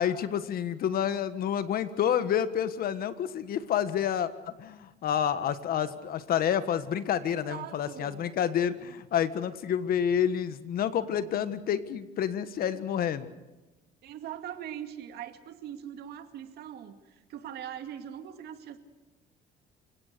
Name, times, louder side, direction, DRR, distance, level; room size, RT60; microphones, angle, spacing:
voice 1, 0.0-13.3, left 9 dB, 60° left, 12 dB, 1.5 m, -29 dB
voice 2, 7.2-8.3 14.0-18.8, right 10 dB, 75° right, 8 dB, 2.2 m, -41 dB
29.0 x 17.5 x 6.8 m, 1.1 s
cardioid pair, 110°, 17 cm